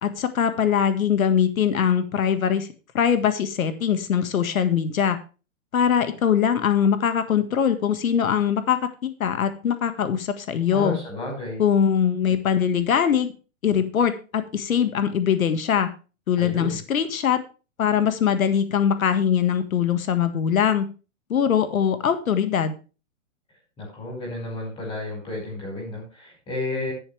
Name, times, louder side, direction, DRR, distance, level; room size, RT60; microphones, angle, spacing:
voice 1, 0.0-2.7 2.9-5.2 5.7-11.0 11.6-13.3 13.6-15.9 16.3-17.4 17.8-20.9 21.3-22.8, left 8 dB, 90° left, 11 dB, 1.8 m, -22 dB
voice 2, 10.7-11.6 16.4-16.8 23.8-26.9, left 2 dB, 15° left, 0 dB, 5.4 m, -32 dB
11.0 x 11.0 x 3.3 m, 0.33 s
hypercardioid pair, 170°, 40 cm